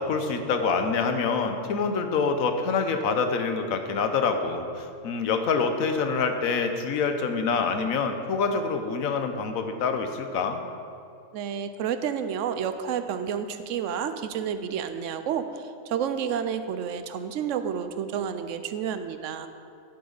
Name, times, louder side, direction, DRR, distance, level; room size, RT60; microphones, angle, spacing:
voice 1, 0.0-10.6, left 5 dB, 80° left, 7 dB, 1.2 m, -26 dB
voice 2, 11.3-19.5, right 8 dB, 70° right, 10 dB, 0.9 m, -30 dB
10.5 x 8.0 x 4.0 m, 2.5 s
omnidirectional pair, 1.4 m